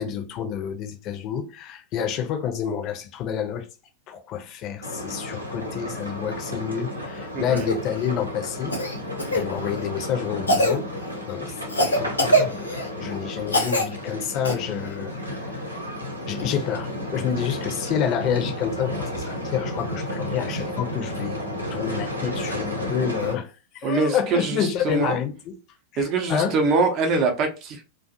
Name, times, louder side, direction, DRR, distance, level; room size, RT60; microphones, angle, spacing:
voice 1, 0.0-3.7 4.1-8.8 9.3-10.9 11.3-11.6 12.0-15.6 16.3-25.5 25.9-26.6, left 8 dB, 35° left, 0.5 m, -28 dB
sound 1, 4.8-23.3, equal, 85° right, 0.7 m, -32 dB
voice 2, 7.3-7.7 23.8-25.2 26.0-27.8, right 3 dB, 35° right, 0.6 m, -23 dB
Cough, 7.5-7.8 8.7-9.4 10.5-10.8 11.7-12.9 13.5-13.9 14.4-14.5 16.4-16.5, equal, 80° left, 0.7 m, -22 dB
2.4 x 2.3 x 2.6 m
figure-of-eight pair, 90°, 0 cm